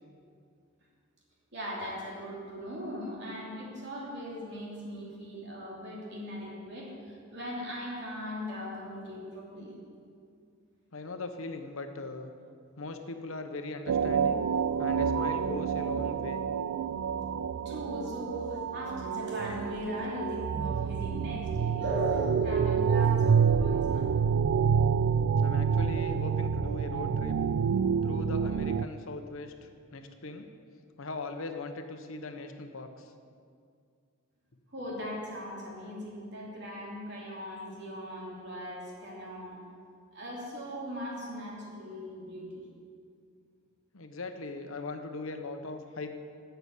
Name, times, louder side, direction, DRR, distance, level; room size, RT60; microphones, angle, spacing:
voice 1, 1.5-9.7 17.0-17.1 17.6-24.1 34.7-39.6 40.1-42.6, equal, 55° right, -4 dB, 3.1 m, -39 dB
voice 2, 10.9-12.3 12.8-14.4 14.8-16.4 25.4-27.4 28.0-30.5 31.0-33.1 43.9-46.1, left 3 dB, 75° left, 6 dB, 1.0 m, -39 dB
sound 1, 13.9-28.9, right 6 dB, 85° right, 0.3 m, -28 dB
12.0 x 6.9 x 8.3 m, 2.3 s
head